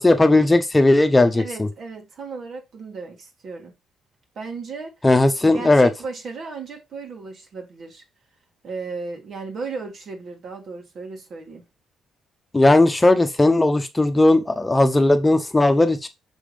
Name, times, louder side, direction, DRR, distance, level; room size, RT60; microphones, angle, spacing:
voice 1, 0.0-1.7 5.0-5.9 12.5-16.1, left 2 dB, 15° left, 1.0 m, -17 dB
voice 2, 1.3-3.7 4.4-4.9 5.4-8.0 8.6-11.6, right 4 dB, 60° right, 2.3 m, -35 dB
6.4 x 3.7 x 5.1 m
cardioid pair, 90°, 0 cm